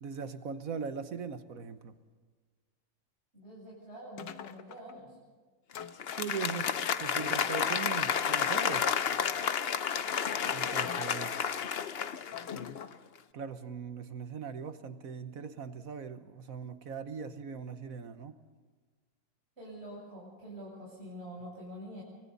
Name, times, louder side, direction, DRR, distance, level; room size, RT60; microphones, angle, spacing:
voice 1, 0.0-2.0 6.2-8.9 10.5-11.6 13.3-18.4, right 6 dB, 55° right, 10 dB, 1.4 m, -40 dB
voice 2, 3.3-5.2 19.6-22.0, equal, 35° right, -6 dB, 7.5 m, -46 dB
sound 1, 4.2-5.0 5.7-6.7 7.2-7.9 8.7-9.6 10.3-10.4 10.8-11.6 12.3-13.0, left 8 dB, 75° left, 1.6 m, -46 dB
Applause, 5.9-12.9, left 7 dB, 55° left, 0.6 m, -31 dB
30.0 x 24.0 x 4.1 m, 1.5 s
omnidirectional pair, 2.0 m